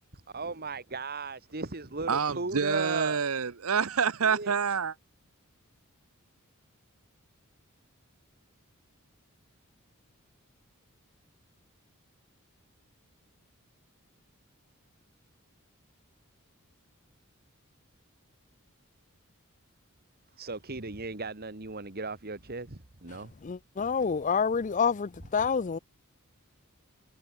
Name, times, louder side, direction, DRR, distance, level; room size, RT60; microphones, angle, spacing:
voice 1, 0.3-3.2 4.2-4.8 20.4-23.3, right 3 dB, 45° right, 1.9 m, -36 dB
voice 2, 2.1-4.9, right 6 dB, 80° right, 0.9 m, -27 dB
voice 3, 23.4-25.8, left 6 dB, 35° left, 0.4 m, -28 dB
head